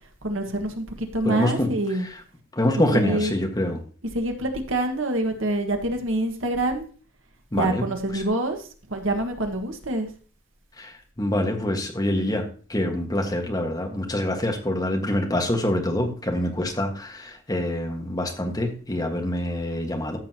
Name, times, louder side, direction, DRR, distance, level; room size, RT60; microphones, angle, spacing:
voice 1, 0.2-2.1 2.9-3.3 4.1-6.8 7.5-10.1, right 1 dB, 80° right, 5 dB, 1.7 m, -26 dB
voice 2, 1.2-1.7 2.5-3.8 7.5-7.9 8.1-8.2 10.8-10.9 11.2-20.2, left 1 dB, 20° left, 2 dB, 1.6 m, -25 dB
13.5 x 7.2 x 2.9 m, 0.40 s
head